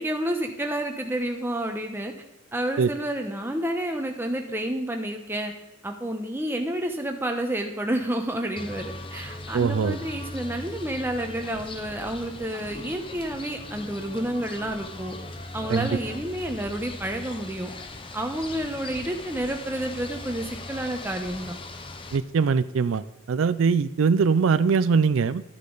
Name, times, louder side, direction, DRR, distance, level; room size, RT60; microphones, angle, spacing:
voice 1, 0.0-2.1 2.5-5.5 5.8-15.1 15.5-17.7 18.1-21.5, right 1 dB, 10° right, 4 dB, 0.9 m, -30 dB
sound 1, 8.6-22.2, left 2 dB, 25° left, 0.7 m, -39 dB
voice 2, 9.5-10.0 15.7-15.9 22.1-25.4, right 5 dB, 85° right, 15 dB, 0.4 m, -22 dB
12.5 x 8.3 x 4.0 m, 0.93 s
head